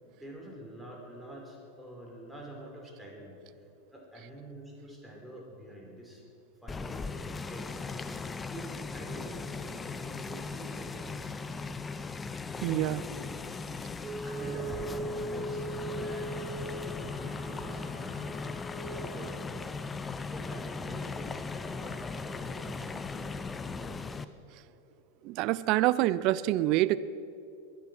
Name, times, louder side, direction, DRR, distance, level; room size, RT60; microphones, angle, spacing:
voice 1, 0.0-3.3 3.9-6.2 6.6-7.9 8.5-8.7 8.9-11.3 12.6-12.8 14.1-15.6 15.9-18.3 19.1-19.7 20.2-24.3, right 1 dB, ahead, -2 dB, 4.7 m, -46 dB
sound 1, 6.7-24.2, left 4 dB, 20° left, 0.7 m, -38 dB
voice 2, 12.6-13.0 25.2-27.0, right 16 dB, 50° right, 16 dB, 0.6 m, -26 dB
Wind instrument woodwind instrument, 14.0-19.3, right 2 dB, 15° right, 1.9 m, -40 dB
23.0 x 9.7 x 6.2 m, 2.7 s
hypercardioid pair, 95°, 0 cm